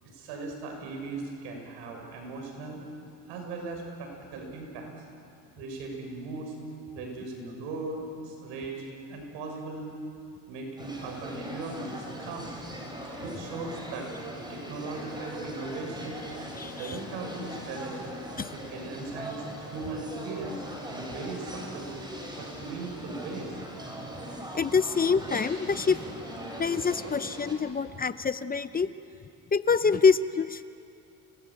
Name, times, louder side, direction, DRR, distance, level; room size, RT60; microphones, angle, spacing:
voice 1, 0.0-2.8 3.3-4.9 5.6-6.6 6.9-9.9 10.5-12.6 13.2-14.1 14.5-16.2 16.8-18.0 18.5-20.6 20.9-21.9 22.4-23.5, right 3 dB, 90° right, 2 dB, 6.8 m, -38 dB
sound 1, 10.8-27.5, equal, 10° right, 5.8 m, -40 dB
voice 2, 16.6-17.0 18.4-18.5 24.5-26.0 26.6-28.9 29.5-30.6, left 5 dB, 20° left, 13 dB, 0.7 m, -25 dB
29.5 x 19.5 x 8.9 m, 2.5 s
cardioid pair, 110°, 41 cm